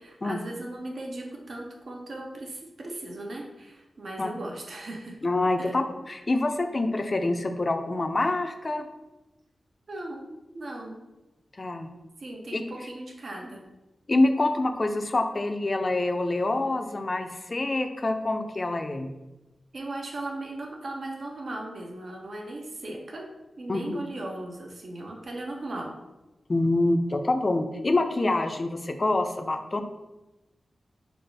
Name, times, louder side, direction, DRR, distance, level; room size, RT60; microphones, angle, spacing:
voice 1, 0.0-5.2 5.6-5.7 9.9-10.3 10.5-11.0 12.2-13.6 19.7-23.3 23.6-26.0, right 2 dB, 65° right, 0 dB, 0.6 m, -37 dB
voice 2, 5.2-8.9 11.6-11.9 12.5-12.6 14.1-19.1 23.7-24.0 26.5-29.8, left 2 dB, 40° left, 7 dB, 0.3 m, -26 dB
3.9 x 2.4 x 3.4 m, 1.0 s
wide cardioid pair, 85°, 0 cm